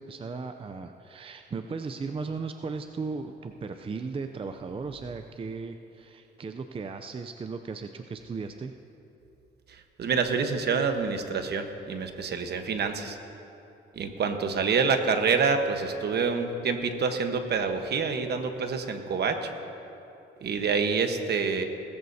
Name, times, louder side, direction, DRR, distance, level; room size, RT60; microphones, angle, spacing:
voice 1, 0.0-8.7, right 4 dB, 25° right, 7 dB, 0.5 m, -36 dB
voice 2, 10.0-13.2 14.0-19.5 20.4-21.6, right 5 dB, 55° right, 6 dB, 1.2 m, -27 dB
19.5 x 14.0 x 2.8 m, 2.8 s
cardioid pair, 90°, 20 cm